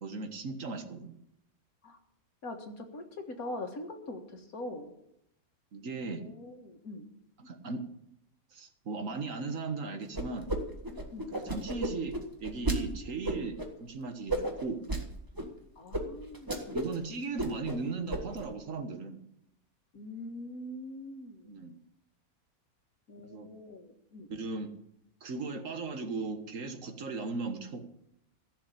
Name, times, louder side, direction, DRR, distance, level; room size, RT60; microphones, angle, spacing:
voice 1, 0.0-1.2 5.7-6.3 7.4-7.8 8.5-10.5 11.3-14.8 16.7-19.2 21.5-21.8 23.2-23.5 24.3-24.7 25.2-27.9, right 3 dB, 65° right, 7 dB, 1.8 m, -37 dB
voice 2, 2.4-4.9 6.0-7.1 11.1-11.3 15.8-16.8 19.9-21.5 23.1-24.3, left 1 dB, 80° left, 4 dB, 2.1 m, -43 dB
sound 1, 10.1-10.6 10.8-12.8 13.2-13.7 14.3-15.0 15.4-15.5 15.9-16.0 16.3-17.0 17.2-17.8 18.1-18.5, right 1 dB, 15° right, 1.5 m, -33 dB
14.5 x 7.0 x 8.4 m, 0.78 s
omnidirectional pair, 1.5 m